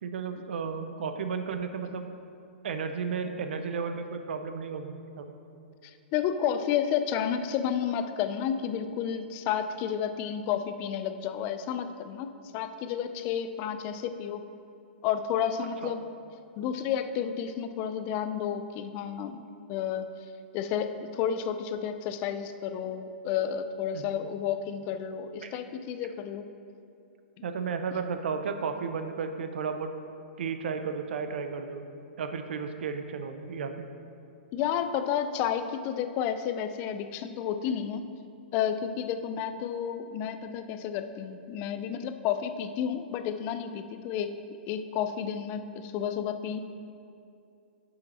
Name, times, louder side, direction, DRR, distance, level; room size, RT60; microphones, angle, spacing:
voice 1, 0.0-2.1 2.6-5.3 15.8-15.9 23.9-24.2 25.4-25.6 27.4-29.9 30.4-31.8 32.2-33.9, right 5 dB, 70° right, 7 dB, 0.6 m, -33 dB
voice 2, 5.8-14.4 15.0-16.0 16.6-19.4 19.7-20.1 20.5-26.4 34.5-38.1 38.5-44.3 44.7-46.7, left 8 dB, 30° left, 9 dB, 0.4 m, -31 dB
8.2 x 5.7 x 4.2 m, 2.6 s
hypercardioid pair, 145°, 6 cm